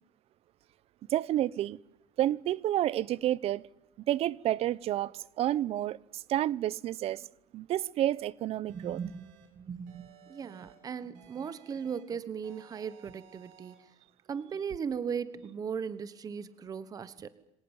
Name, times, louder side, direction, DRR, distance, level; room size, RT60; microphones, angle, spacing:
voice 1, 1.1-1.8 2.2-3.6 4.1-7.3 7.5-9.0, right 13 dB, 45° right, 0.8 m, -30 dB
voice 2, 8.7-13.9 14.3-17.3, right 6 dB, 25° right, 1.3 m, -38 dB
sound 1, 8.7-9.5 9.9-10.8 11.2-12.0 12.4-13.8, right 9 dB, 65° right, 8.0 m, -58 dB
26.0 x 18.0 x 8.9 m
cardioid pair, 150°, 14 cm